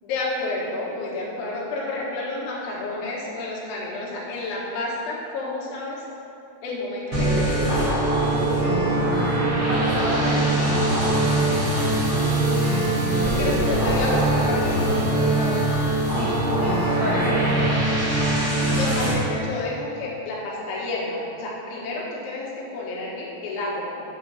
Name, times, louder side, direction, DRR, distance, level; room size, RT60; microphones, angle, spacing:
voice 1, 0.0-6.1 6.6-7.9 13.2-15.7 16.8-17.3 18.7-24.0, left 2 dB, 75° left, -4 dB, 3.6 m, -30 dB
sound 1, 7.1-19.1, right 1 dB, 45° right, 1.8 m, -22 dB
voice 2, 9.6-10.9 16.1-17.8, equal, 75° right, -7 dB, 2.2 m, -30 dB
9.2 x 4.4 x 6.9 m, 2.8 s
omnidirectional pair, 5.5 m